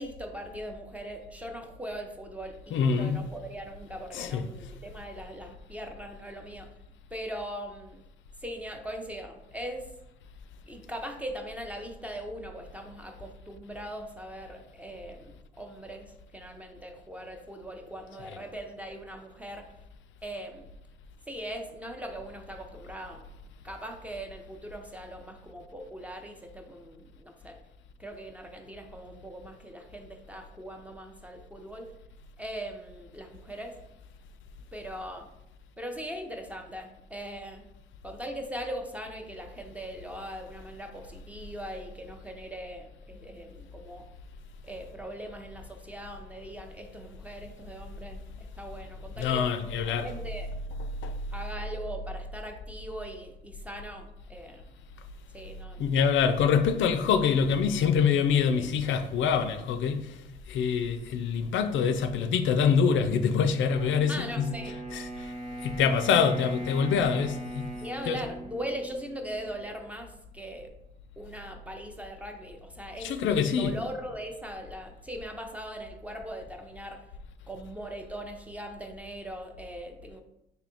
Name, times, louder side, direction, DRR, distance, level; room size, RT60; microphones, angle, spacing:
voice 1, 0.0-6.7 7.1-8.0 8.4-9.9 10.7-19.7 20.2-20.7 21.3-23.3 23.6-27.6 28.0-31.9 32.4-33.8 34.7-35.3 35.8-37.7 38.0-44.1 44.6-49.5 50.0-50.5 51.3-54.7 55.3-55.8 58.6-58.7 64.1-64.8 67.7-70.7 71.2-77.1 77.5-80.2, equal, 5° right, 0.5 m, -40 dB
voice 2, 2.7-3.2 4.1-4.5 18.2-18.4 49.2-50.2 50.8-51.1 55.8-60.2 60.5-65.3 65.6-67.7 68.1-68.2 73.0-73.8, left 6 dB, 75° left, 0.4 m, -25 dB
Wind instrument woodwind instrument, 63.7-69.6, right 1 dB, 40° right, 0.9 m, -40 dB
3.4 x 2.8 x 3.8 m
cardioid pair, 90°, 20 cm